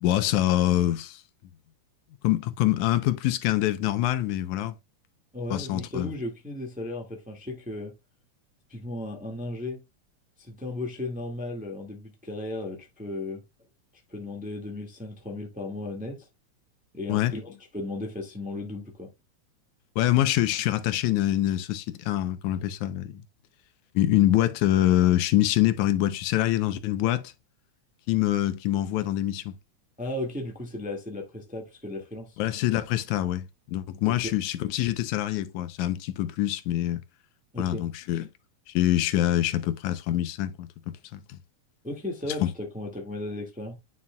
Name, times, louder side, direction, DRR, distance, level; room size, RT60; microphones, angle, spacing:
voice 1, 0.0-1.2 2.2-4.8 5.5-6.1 17.1-17.3 20.0-23.2 24.0-27.3 28.1-29.5 32.4-37.0 37.6-38.3 38.7-41.4 42.4-42.5, left 13 dB, 85° left, 2.1 m, -25 dB
voice 2, 5.3-7.9 8.7-9.8 10.4-13.4 14.1-16.3 16.9-19.1 30.0-32.4 34.0-34.3 37.5-37.9 41.8-43.8, left 2 dB, 5° right, 0.9 m, -35 dB
9.6 x 5.7 x 2.2 m
omnidirectional pair, 3.3 m